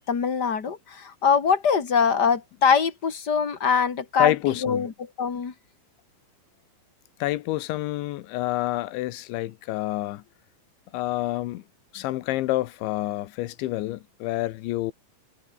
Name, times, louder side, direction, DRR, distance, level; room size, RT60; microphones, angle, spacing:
voice 1, 0.0-4.3 4.6-5.5, left 6 dB, 35° left, 1.7 m, -23 dB
voice 2, 4.2-4.9 7.2-10.2 10.9-11.6 11.9-14.9, left 17 dB, 80° left, 3.4 m, -28 dB
omnidirectional pair, 5.3 m